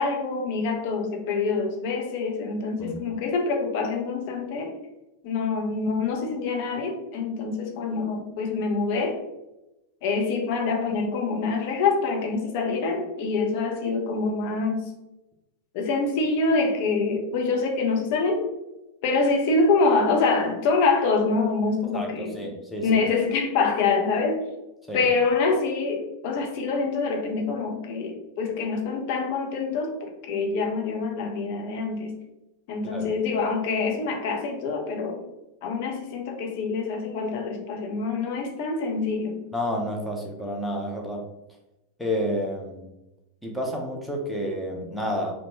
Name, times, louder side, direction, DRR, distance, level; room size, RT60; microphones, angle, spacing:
voice 1, 0.0-4.7 5.2-9.2 10.0-14.9 15.7-18.4 19.0-22.4 22.8-24.4 24.9-30.0 30.2-32.1 32.7-35.2 35.6-39.4, left 4 dB, 45° left, 2 dB, 0.6 m, -25 dB
voice 2, 21.9-23.0 24.9-25.1 32.8-33.1 39.5-41.2 42.0-42.9 43.4-45.3, equal, ahead, -1 dB, 0.6 m, -30 dB
2.9 x 2.1 x 2.9 m, 0.94 s
figure-of-eight pair, 90°, 0 cm